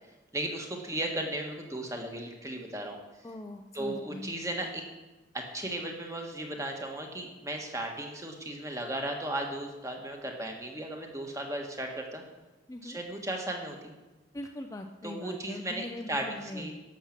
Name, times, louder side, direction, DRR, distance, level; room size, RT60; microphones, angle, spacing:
voice 1, 0.3-3.0 3.7-4.8 5.3-12.2 12.8-13.9 15.0-16.7, right 1 dB, 15° right, 2 dB, 1.4 m, -36 dB
voice 2, 3.2-4.3 12.7-13.0 14.3-16.8, left 1 dB, 15° left, 4 dB, 0.4 m, -41 dB
11.5 x 7.3 x 5.9 m, 1.1 s
head